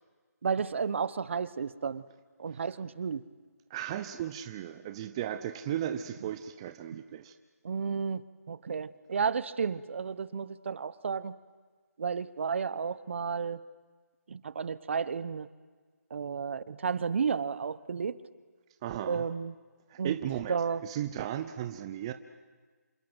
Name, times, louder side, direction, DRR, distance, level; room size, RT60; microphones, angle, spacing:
voice 1, 0.4-2.0 2.4-3.2 6.9-7.0 7.6-11.3 12.0-13.6 14.3-15.5 16.1-18.2 19.0-19.5 20.0-20.1 20.5-20.8, right 6 dB, 45° right, 17 dB, 1.1 m, -32 dB
voice 2, 3.7-7.4 18.8-19.3 19.9-20.6 20.8-22.1, right 11 dB, 20° right, 9 dB, 0.7 m, -35 dB
28.0 x 26.0 x 8.0 m, 1.4 s
hypercardioid pair, 165°, 9 cm